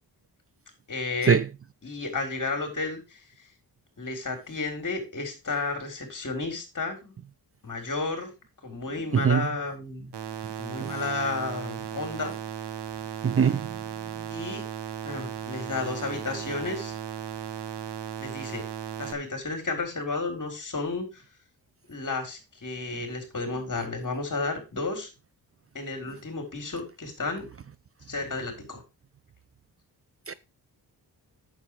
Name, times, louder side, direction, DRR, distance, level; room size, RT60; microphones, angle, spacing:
voice 1, 0.9-1.4 1.8-3.2 4.0-7.1 7.6-8.3 8.6-10.1 10.6-12.3 13.5-13.6 14.3-14.6 15.0-16.9 18.2-18.6 19.0-21.2 21.9-25.1 25.7-27.5 28.1-28.8, left 3 dB, 50° left, 4.3 m, -32 dB
sound 1, 10.1-19.1, right 9 dB, 75° right, 1.3 m, -36 dB
voice 2, 13.2-13.6 30.3-30.4, right 7 dB, 35° right, 0.5 m, -21 dB
8.9 x 7.3 x 5.0 m
cardioid pair, 70°, 41 cm